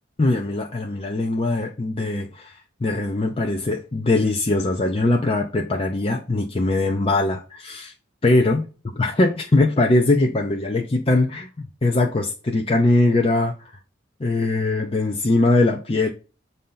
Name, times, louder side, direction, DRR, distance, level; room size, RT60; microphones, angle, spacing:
voice 1, 0.2-7.9 8.2-8.6 9.0-11.5 11.8-13.5 14.2-16.1, left 2 dB, 30° left, 0.5 m, -21 dB
7.6 x 2.8 x 5.5 m
head